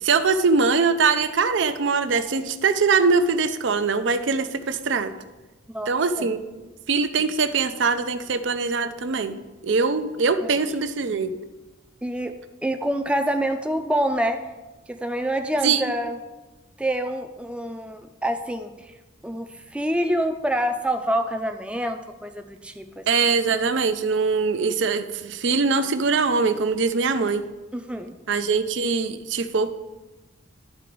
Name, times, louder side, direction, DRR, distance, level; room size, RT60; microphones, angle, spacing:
voice 1, 0.0-5.1 5.9-6.4 6.9-9.4 9.6-11.3 15.6-15.8 23.1-27.5 28.3-29.7, right 4 dB, 70° right, 11 dB, 0.5 m, -22 dB
voice 2, 12.0-12.3 12.6-14.4 14.9-16.2 16.8-18.9 19.2-23.0 27.7-28.1, right 1 dB, 5° right, 6 dB, 0.4 m, -26 dB
11.5 x 3.9 x 4.6 m, 1.1 s
head